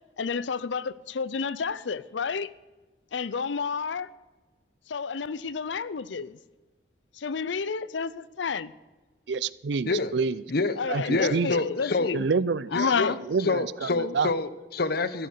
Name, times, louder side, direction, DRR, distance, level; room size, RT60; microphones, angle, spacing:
voice 1, 0.2-2.5 3.1-4.1 4.9-6.4 7.1-8.7 10.8-12.3 12.7-13.2, left 5 dB, 80° left, 0.6 m, -30 dB
voice 2, 9.3-10.4 10.9-11.5 12.1-12.7 13.3-14.3, right 5 dB, 70° right, 0.5 m, -27 dB
voice 3, 11.1-12.1 12.7-13.1 13.4-15.3, left 3 dB, 60° left, 0.9 m, -27 dB
14.5 x 10.5 x 6.7 m
head